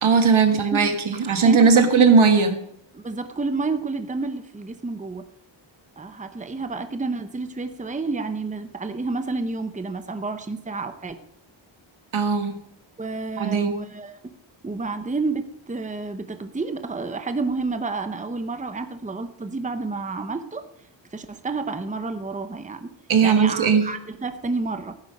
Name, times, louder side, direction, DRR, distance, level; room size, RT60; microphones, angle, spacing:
voice 1, 0.0-2.6 12.1-12.6 13.4-13.7 23.1-23.9, right 5 dB, 80° right, 6 dB, 1.7 m, -18 dB
voice 2, 1.2-2.0 2.9-5.2 6.0-11.2 13.0-14.3 14.6-20.6 21.1-22.9 23.2-25.0, right 3 dB, 15° right, 9 dB, 0.8 m, -30 dB
15.5 x 9.5 x 5.4 m, 0.75 s
wide cardioid pair, 140°, 47 cm